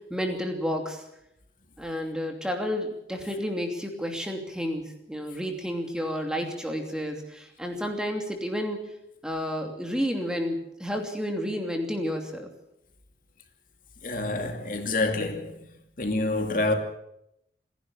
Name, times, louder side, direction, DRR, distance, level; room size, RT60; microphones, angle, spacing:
voice 1, 0.1-1.0 1.8-8.9 9.2-12.5, equal, 5° right, 2.8 m, -31 dB
voice 2, 14.0-15.6 16.0-16.7, left 2 dB, 50° left, 2.6 m, -27 dB
27.5 x 11.0 x 8.7 m
head